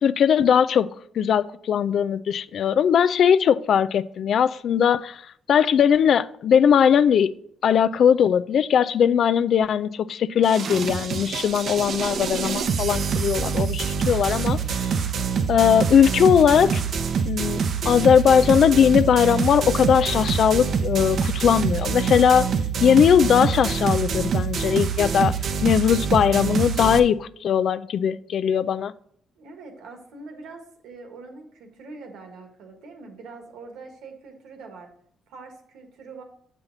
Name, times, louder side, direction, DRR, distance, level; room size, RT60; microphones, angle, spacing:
voice 1, 0.0-0.9 1.2-5.2 5.5-7.3 7.6-14.9 15.5-16.8 17.3-17.6 17.9-22.5 22.8-25.3 25.6-28.9, left 8 dB, 65° left, 0.4 m, -19 dB
sound 1, 10.4-27.0, right 6 dB, 60° right, 0.6 m, -25 dB
voice 2, 29.4-34.9 35.3-36.2, right 3 dB, 80° right, 1.6 m, -43 dB
7.2 x 5.6 x 3.9 m
cardioid pair, 90°, 0 cm